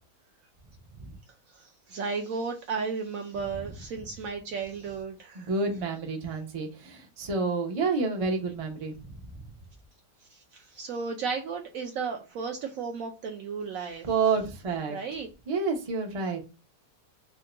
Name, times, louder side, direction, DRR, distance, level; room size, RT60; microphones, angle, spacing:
voice 1, 1.5-5.5 10.3-14.1 14.9-15.3, right 5 dB, 70° right, 0.8 m, -34 dB
voice 2, 5.4-8.9 14.0-15.0 15.5-16.4, right 4 dB, 55° right, 0.3 m, -29 dB
3.6 x 2.2 x 3.7 m
omnidirectional pair, 1.8 m